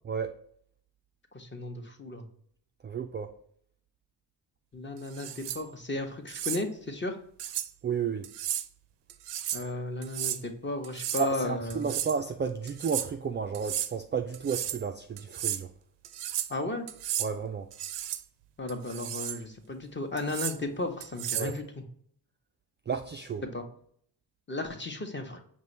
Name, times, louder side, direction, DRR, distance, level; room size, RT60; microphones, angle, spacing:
voice 1, 1.3-2.3 4.7-7.2 9.5-11.9 16.5-16.9 18.6-21.8 23.5-23.6 24.5-25.4, left 2 dB, 25° left, 0.9 m, -34 dB
voice 2, 2.8-3.3 7.8-8.3 11.2-15.7 17.2-17.7 21.3-21.5 22.9-23.4, right 6 dB, 30° right, 0.3 m, -32 dB
sound 1, 5.1-5.6 6.3-6.6 7.4-7.7 8.2-8.7 9.1-9.7 10.0-10.4 10.8-11.3 11.7-12.2 12.7-13.1 13.5-13.9 14.3-14.8 15.2-15.6 16.0-16.5 16.9-17.3 17.7-18.2 18.7-19.4 20.2-20.6 21.0-21.5, right 11 dB, 75° right, 0.5 m, -34 dB
5.3 x 2.6 x 3.1 m
supercardioid pair, 55°, 43 cm